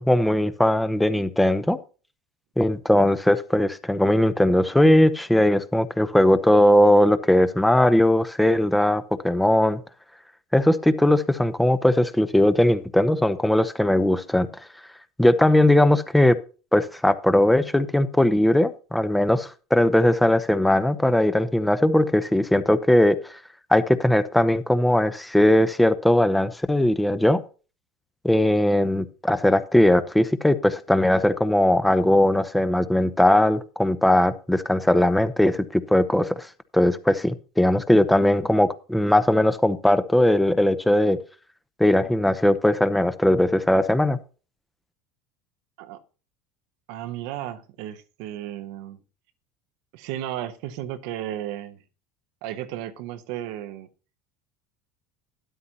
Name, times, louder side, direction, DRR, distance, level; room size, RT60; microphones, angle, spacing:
voice 1, 0.0-1.8 2.6-9.8 10.5-14.5 15.2-16.4 16.7-23.2 23.7-27.4 28.2-36.5 36.7-41.2 41.8-44.2, left 1 dB, 5° left, 11 dB, 0.9 m, -19 dB
voice 2, 46.9-49.0 49.9-51.8 52.4-53.9, right 12 dB, 65° right, 10 dB, 0.9 m, -34 dB
12.5 x 9.7 x 2.9 m, 0.35 s
hypercardioid pair, 70°, 0 cm